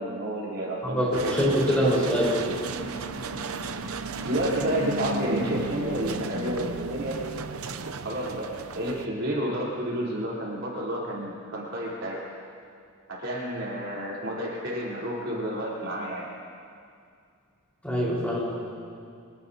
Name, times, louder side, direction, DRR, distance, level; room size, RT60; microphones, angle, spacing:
voice 1, 0.0-2.5 4.2-7.3 8.0-12.2 13.1-16.2, right 1 dB, 65° right, -5 dB, 4.0 m, -30 dB
voice 2, 0.8-2.4 17.8-18.7, equal, 5° left, -6 dB, 4.8 m, -24 dB
sound 1, 1.1-9.1, right 4 dB, 85° right, 0.7 m, -34 dB
24.5 x 18.0 x 2.9 m, 2.3 s
head